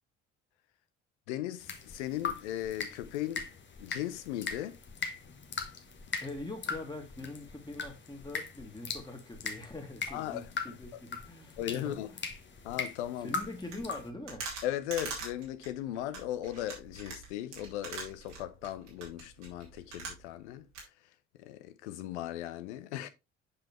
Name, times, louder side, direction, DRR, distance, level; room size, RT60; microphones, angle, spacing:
voice 1, 1.3-3.5 3.8-4.8 10.1-10.8 11.6-12.1 12.6-13.3 14.6-20.7 21.4-23.1, left 13 dB, 65° left, 0.8 m, -37 dB
sound 1, 1.6-14.1, left 5 dB, 30° left, 1.2 m, -40 dB
voice 2, 6.2-12.2 13.2-14.5, left 2 dB, 10° left, 2.0 m, -43 dB
sound 2, 13.6-20.5 20.7-20.8, right 4 dB, 75° right, 2.2 m, -43 dB
7.0 x 5.6 x 3.0 m
figure-of-eight pair, 50°, 36 cm